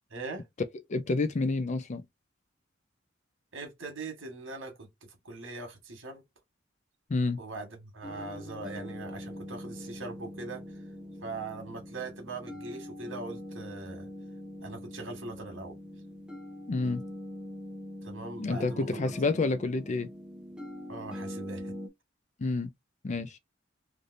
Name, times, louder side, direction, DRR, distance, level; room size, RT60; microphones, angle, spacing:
voice 1, 0.1-0.5 3.5-6.2 7.4-10.6 11.2-14.1 14.6-15.8 18.0-19.1 20.9-21.7, right 3 dB, 70° right, 1.5 m, -41 dB
voice 2, 0.9-2.0 7.1-7.4 16.7-17.0 18.4-20.1 22.4-22.7 23.0-23.4, left 3 dB, 35° left, 0.4 m, -29 dB
sound 1, 8.0-21.9, left 1 dB, 5° right, 0.7 m, -43 dB
3.3 x 2.6 x 2.6 m
head